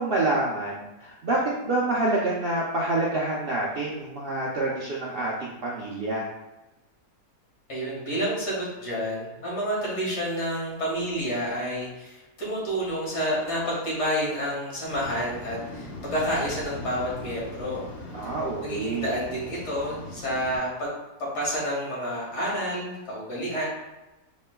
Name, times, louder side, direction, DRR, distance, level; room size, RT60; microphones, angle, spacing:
voice 1, 0.0-6.3 18.1-19.1, right 2 dB, 65° right, -5 dB, 0.5 m, -27 dB
voice 2, 7.7-17.9 18.2-20.9 21.3-23.7, equal, 90° left, -6 dB, 2.1 m, -29 dB
Waves surf, 14.9-20.6, left 2 dB, 70° left, 1.2 m, -40 dB
5.0 x 3.1 x 2.2 m, 1.0 s
omnidirectional pair, 1.7 m